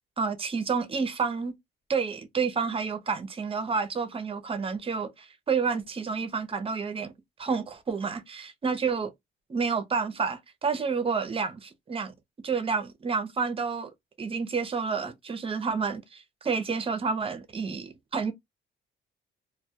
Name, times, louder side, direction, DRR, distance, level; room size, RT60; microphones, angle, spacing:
voice 1, 0.2-1.5 1.9-7.1 7.4-9.1 9.5-12.1 12.4-13.9 14.2-18.3, right 5 dB, 30° right, 0.5 m, -29 dB
2.1 x 2.1 x 2.8 m
cardioid pair, 90°, 20 cm